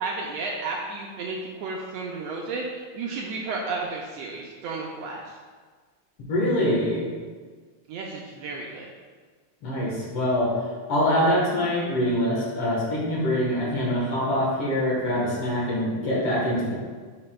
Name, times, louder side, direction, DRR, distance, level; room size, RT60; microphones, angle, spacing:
voice 1, 0.0-5.3 7.9-8.9, right 3 dB, 80° right, -1 dB, 1.6 m, -32 dB
voice 2, 6.3-7.0 9.6-10.5 10.9-16.7, equal, 55° left, -4 dB, 2.0 m, -24 dB
9.6 x 5.9 x 2.2 m, 1.5 s
omnidirectional pair, 3.4 m